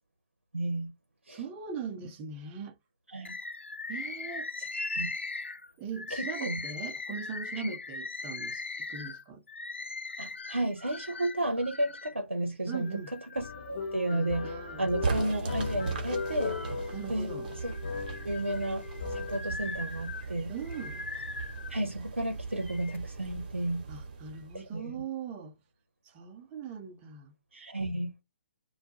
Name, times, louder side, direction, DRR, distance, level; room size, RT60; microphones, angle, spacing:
voice 1, 0.5-0.9 1.3-1.4 3.1-3.3 5.0-5.1 6.1-6.6 7.6-7.7 10.2-13.0 13.4-14.5 14.8-16.6 17.1-17.3 17.6-17.7 18.2-18.8 19.1-20.5 21.7-23.8 24.5-25.0 27.5-28.1, right 1 dB, 85° right, 0.6 m, -32 dB
voice 2, 1.3-2.8 3.9-4.5 5.8-9.4 12.7-13.1 14.1-14.9 16.9-17.5 20.5-21.0 23.9-25.6 26.0-27.4, right 6 dB, 20° right, 0.6 m, -40 dB
Bird, 3.2-12.2 12.7-13.7 14.2-15.2 15.7-17.0 17.5-21.8 22.5-23.0, left 3 dB, 80° left, 0.5 m, -40 dB
sound 1, 13.4-19.4, left 5 dB, 45° left, 0.7 m, -38 dB
sound 2, 15.0-24.8, right 4 dB, 45° right, 0.9 m, -38 dB
2.3 x 2.2 x 2.7 m
figure-of-eight pair, 135°, 6 cm